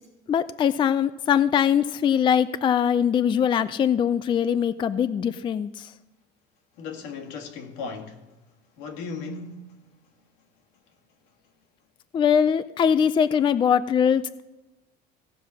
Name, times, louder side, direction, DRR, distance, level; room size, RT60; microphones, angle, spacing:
voice 1, 0.3-5.9 12.1-14.4, left 8 dB, 25° left, 0.4 m, -22 dB
voice 2, 6.8-8.2 8.8-9.8, left 4 dB, 80° left, 1.9 m, -36 dB
16.5 x 5.6 x 6.2 m
cardioid pair, 130°, 18 cm